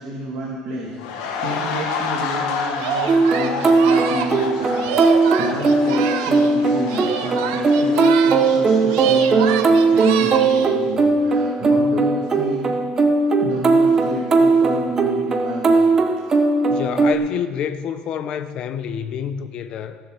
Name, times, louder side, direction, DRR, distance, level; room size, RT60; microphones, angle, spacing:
voice 1, 0.0-12.7 13.4-15.8, right 1 dB, 40° right, -5 dB, 2.5 m, -30 dB
sound 1, 0.9-9.8 10.1-10.3, left 5 dB, 85° left, 1.5 m, -30 dB
Singing, 2.8-6.6 6.9-8.6 8.9-10.8, right 8 dB, 85° right, 1.0 m, -27 dB
sound 2, 3.1-17.2, right 3 dB, 20° right, 0.8 m, -18 dB
voice 2, 16.7-20.0, left 8 dB, 35° left, 9 dB, 0.7 m, -28 dB
15.5 x 7.3 x 6.6 m, 1.5 s
cardioid pair, 175°, 2 cm